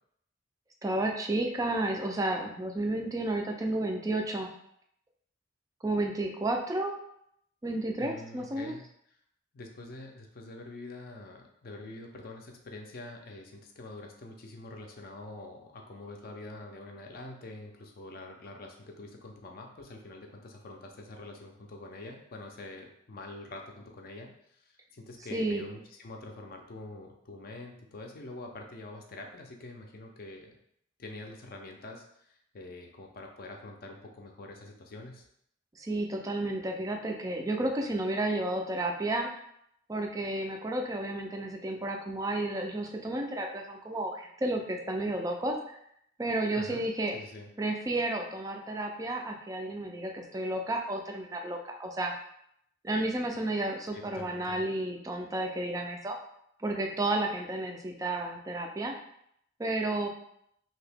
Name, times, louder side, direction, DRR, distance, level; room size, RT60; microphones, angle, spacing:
voice 1, 0.8-4.5 5.8-7.0 7.6-8.7 25.3-25.6 35.7-39.3 39.9-45.8 46.2-47.2 47.6-52.1 52.8-56.2 56.6-58.9 59.6-60.1, right 2 dB, 15° right, 2 dB, 0.3 m, -32 dB
voice 2, 8.0-8.8 9.5-30.6 31.0-35.3 46.5-46.8 47.1-47.5 53.9-54.6, left 2 dB, 50° left, 2 dB, 0.4 m, -45 dB
2.8 x 2.7 x 3.3 m, 0.72 s
head